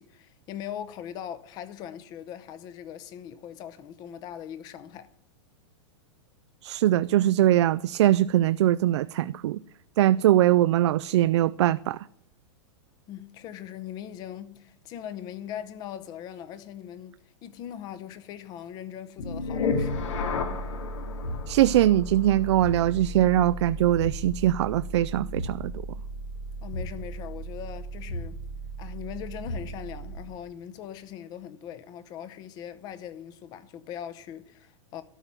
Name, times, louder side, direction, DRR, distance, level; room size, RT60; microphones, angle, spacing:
voice 1, 0.0-5.1 13.1-20.0 26.6-28.4 28.8-35.0, left 10 dB, 25° left, 0.8 m, -40 dB
voice 2, 6.6-9.6 10.0-12.0 21.5-25.7, right 13 dB, 70° right, 0.4 m, -22 dB
sound 1, 19.2-30.3, left 2 dB, 90° left, 2.6 m, -34 dB
12.5 x 6.0 x 9.2 m
supercardioid pair, 165°, 15 cm